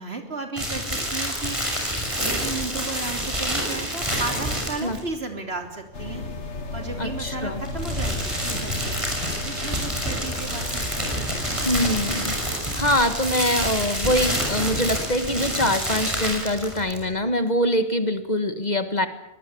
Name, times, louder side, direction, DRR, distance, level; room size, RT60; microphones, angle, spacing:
voice 1, 0.0-6.2 6.7-11.1, right 3 dB, 60° right, 5 dB, 3.5 m, -34 dB
sound 1, 0.6-5.1 7.5-17.1, equal, 25° right, 6.5 m, -28 dB
sound 2, 5.9-12.2, left 3 dB, 85° left, 2.3 m, -35 dB
voice 2, 7.0-7.6 11.6-19.1, left 1 dB, 40° left, 9 dB, 1.7 m, -24 dB
23.5 x 18.5 x 8.6 m, 0.84 s
omnidirectional pair, 1.2 m